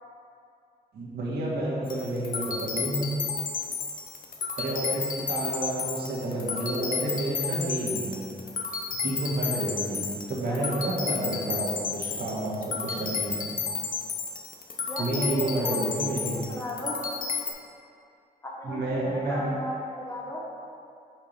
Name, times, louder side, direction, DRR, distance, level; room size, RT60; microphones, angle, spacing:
voice 1, 0.9-3.1 4.6-8.2 9.0-13.5 15.0-16.4 18.6-19.4, right 1 dB, 85° right, -5 dB, 1.5 m, -30 dB
sound 1, 1.9-17.5, left 5 dB, 55° left, 0.7 m, -32 dB
voice 2, 14.8-17.0 18.4-20.4, left 1 dB, 15° left, -3 dB, 1.1 m, -36 dB
5.7 x 4.5 x 5.2 m, 2.5 s
wide cardioid pair, 135°, 16 cm